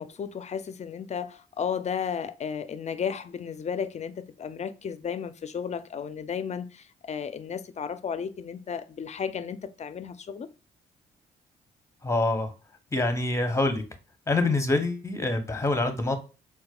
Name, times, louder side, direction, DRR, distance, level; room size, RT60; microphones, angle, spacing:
voice 1, 0.0-10.5, left 7 dB, 35° left, 0.4 m, -34 dB
voice 2, 12.0-12.5 12.9-13.8 14.3-16.2, left 2 dB, 15° left, 0.8 m, -25 dB
4.0 x 2.2 x 2.3 m
hypercardioid pair, 50°, 20 cm